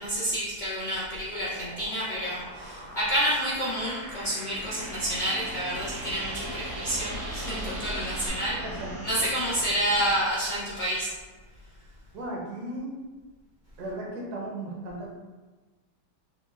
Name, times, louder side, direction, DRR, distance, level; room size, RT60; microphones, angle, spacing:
voice 1, 0.0-8.6 9.0-11.1, right 1 dB, 60° left, -9 dB, 0.5 m, -29 dB
sound 1, 1.4-8.3, right 2 dB, 90° right, 1.6 m, -42 dB
sound 2, 4.5-10.1, equal, 30° right, 0.6 m, -38 dB
voice 2, 12.1-12.9 13.8-15.1, right 1 dB, 70° right, -3 dB, 1.3 m, -36 dB
4.8 x 2.4 x 2.4 m, 1.3 s
omnidirectional pair, 1.8 m